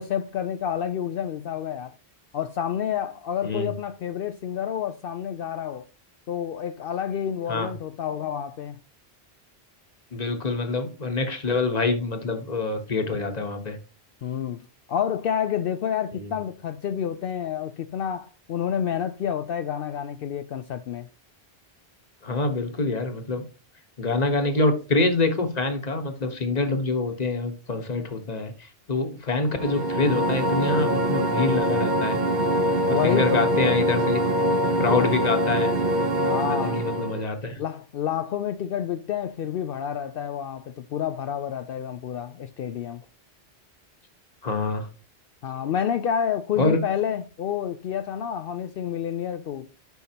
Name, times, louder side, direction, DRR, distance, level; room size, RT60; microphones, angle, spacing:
voice 1, 0.0-1.9 2.3-5.8 6.3-8.8 14.2-21.1 32.9-33.4 34.9-35.1 36.2-36.9 37.6-43.0 45.4-49.7, left 9 dB, 65° left, 0.7 m, -29 dB
voice 2, 10.1-13.8 16.1-16.3 22.2-23.4 24.0-32.2 32.9-34.2 34.8-35.7 36.5-37.6 44.4-44.9 46.6-46.8, left 3 dB, 40° left, 1.3 m, -26 dB
sound 1, 29.4-37.3, right 1 dB, 50° right, 0.9 m, -24 dB
11.5 x 5.6 x 2.8 m
omnidirectional pair, 1.0 m